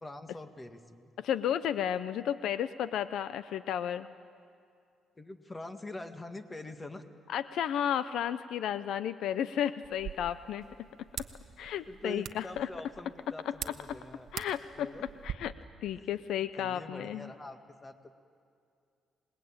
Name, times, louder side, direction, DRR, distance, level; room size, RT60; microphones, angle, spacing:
voice 1, 0.0-1.1 5.2-7.0 11.9-14.3 14.7-15.1 16.0-16.1 16.4-18.1, left 2 dB, 20° left, 7 dB, 1.9 m, -45 dB
voice 2, 1.2-4.1 7.3-10.7 11.0-11.1 11.6-12.7 13.5-14.0 14.3-15.5 15.8-17.3, left 10 dB, 80° left, 14 dB, 0.6 m, -33 dB
sound 1, 9.8-15.3, right 9 dB, 70° right, 1.1 m, -45 dB
27.0 x 20.0 x 8.8 m, 2.4 s
cardioid pair, 90°, 0 cm